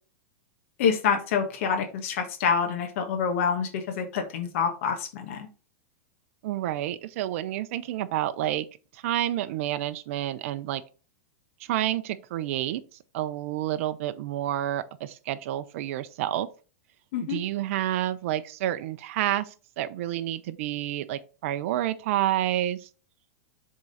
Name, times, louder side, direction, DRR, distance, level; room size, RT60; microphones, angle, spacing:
voice 1, 0.8-5.5 17.1-17.4, left 6 dB, 65° left, 1.3 m, -27 dB
voice 2, 6.4-8.6 8.9-10.8 11.6-12.8 13.1-16.5 17.2-22.9, right 13 dB, 60° right, 0.5 m, -29 dB
7.4 x 3.7 x 4.1 m
supercardioid pair, 135°, 8 cm